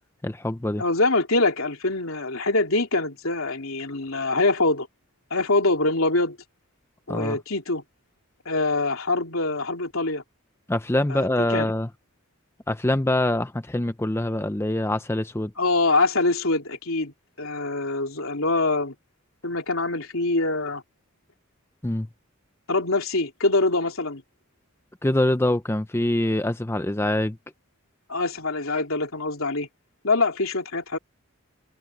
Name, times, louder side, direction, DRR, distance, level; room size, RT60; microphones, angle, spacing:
voice 1, 0.2-0.8 7.1-7.4 10.7-11.9 12.7-15.5 21.8-22.1 25.0-27.4, left 1 dB, 10° left, 0.6 m, -24 dB
voice 2, 0.8-4.9 5.3-6.4 7.1-7.8 8.4-10.2 11.1-11.7 15.6-18.9 19.4-20.8 22.7-24.2 28.1-29.7 30.0-31.0, left 2 dB, 75° left, 3.2 m, -24 dB
head